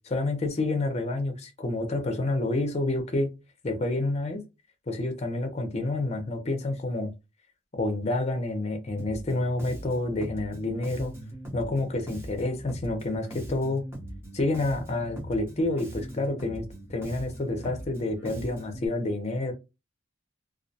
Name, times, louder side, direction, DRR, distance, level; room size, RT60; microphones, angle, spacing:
voice 1, 0.0-3.3 3.6-4.4 4.9-7.1 7.7-11.1 11.5-13.8 14.3-19.5, left 2 dB, 35° left, 0.5 m, -29 dB
Bass guitar, 9.0-18.9, equal, 15° right, 0.7 m, -41 dB
2.3 x 2.1 x 2.6 m
head